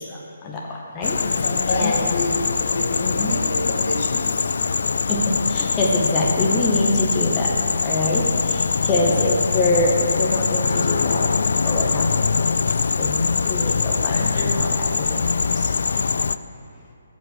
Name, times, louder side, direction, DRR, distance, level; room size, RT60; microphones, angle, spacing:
sound 1, 1.0-16.4, left 5 dB, 70° left, 0.4 m, -22 dB
voice 1, 1.1-4.6 9.0-9.2 14.1-14.7 15.0-15.2, left 2 dB, 55° left, -1 dB, 2.2 m, -28 dB
voice 2, 1.7-2.1 3.0-3.4 5.1-5.2 5.5-7.5 7.8-8.3 8.5-11.3 11.6-12.2 13.0-13.2 13.5-15.1 15.6-15.7, left 2 dB, 15° left, -2 dB, 1.0 m, -24 dB
15.5 x 5.2 x 6.5 m, 2.3 s
hypercardioid pair, 160°, 0 cm